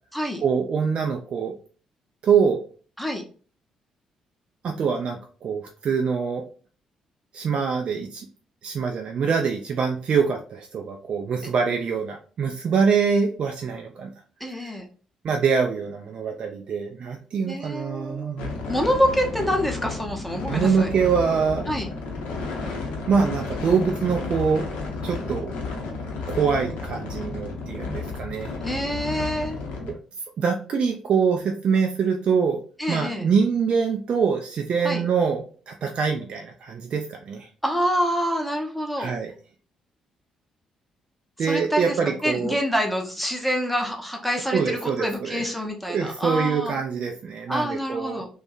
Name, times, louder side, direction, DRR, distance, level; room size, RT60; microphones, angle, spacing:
voice 1, 0.4-1.5 2.2-2.6 4.6-6.4 7.3-8.3 8.6-14.1 15.2-18.5 20.5-21.7 23.1-24.7 25.0-25.5 26.3-28.5 29.9-30.0 30.4-32.6 32.9-37.5 39.0-39.3 41.4-42.5 44.5-45.4 45.9-48.2, right 6 dB, 45° right, 3 dB, 0.3 m, -24 dB
voice 2, 14.4-14.8 17.5-18.4 18.7-20.9 21.7-21.9 28.6-29.6 32.8-33.2 34.8-35.0 37.6-39.2 41.4-46.7 47.5-48.3, equal, ahead, 2 dB, 0.7 m, -26 dB
sound 1, 18.4-29.9, left 3 dB, 60° left, 0.6 m, -32 dB
2.6 x 2.2 x 2.4 m, 0.40 s
figure-of-eight pair, 40°, 2 cm